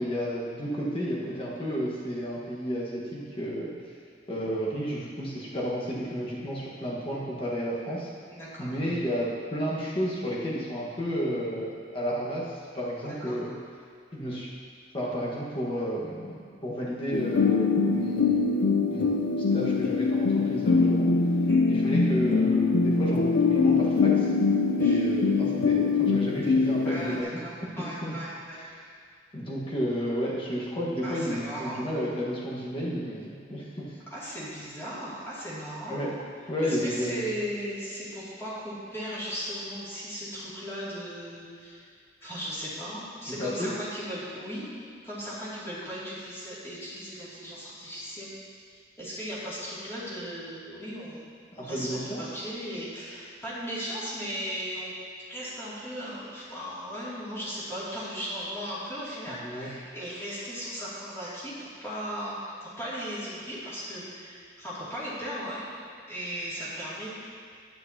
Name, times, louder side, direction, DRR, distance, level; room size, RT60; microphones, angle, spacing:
voice 1, 0.0-3.7 4.3-8.1 8.6-13.5 14.1-14.5 14.9-18.5 18.9-21.1 21.7-24.3 24.8-27.4 28.0-28.1 29.3-34.0 35.9-36.1 36.5-37.2 43.4-43.8 51.6-52.2 59.3-59.7, equal, 30° left, -6 dB, 1.4 m, -32 dB
voice 2, 8.3-8.7 13.0-13.4 21.5-21.7 24.8-25.0 26.6-28.6 31.0-31.9 34.1-36.1 36.6-41.8 42.2-48.3 49.0-51.3 51.5-55.0 55.3-65.7 66.1-67.1, equal, 15° left, -10 dB, 2.5 m, -37 dB
sound 1, 17.1-27.2, left 4 dB, 80° left, 0.5 m, -23 dB
11.0 x 9.0 x 2.9 m, 2.2 s
head